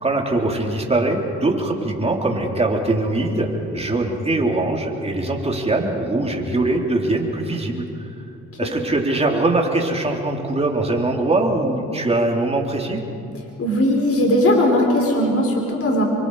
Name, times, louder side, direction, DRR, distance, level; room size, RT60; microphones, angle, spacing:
voice 1, 0.0-7.9 8.6-13.0, right 2 dB, 20° right, 1 dB, 3.5 m, -22 dB
voice 2, 13.6-16.0, left 1 dB, 50° left, 0 dB, 4.6 m, -18 dB
28.0 x 24.0 x 4.9 m, 2.8 s
cardioid pair, 90°, 30 cm